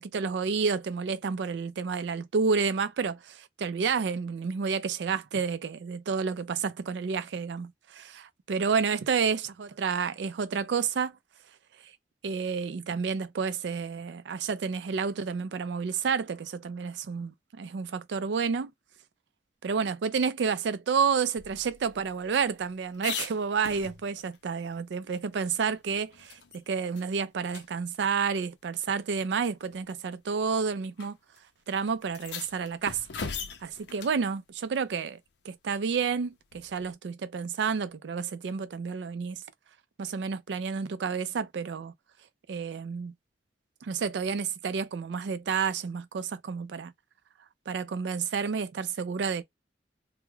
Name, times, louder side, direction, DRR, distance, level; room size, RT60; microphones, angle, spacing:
voice 1, 0.0-11.2 12.2-18.7 19.6-31.2 31.7-35.2 35.5-39.4 40.0-41.9 42.5-43.1 43.8-46.9 47.7-49.4, right 5 dB, 80° right, 0.4 m, -30 dB
sound 1, 21.4-24.4 24.7-24.8 25.2-26.6 27.0-27.1 27.5-27.7 28.7-28.8 29.7-30.0 31.0-31.1 31.4-31.5 32.0-34.2 36.5-36.9, left 6 dB, 75° left, 0.5 m, -41 dB
2.3 x 2.0 x 3.0 m
head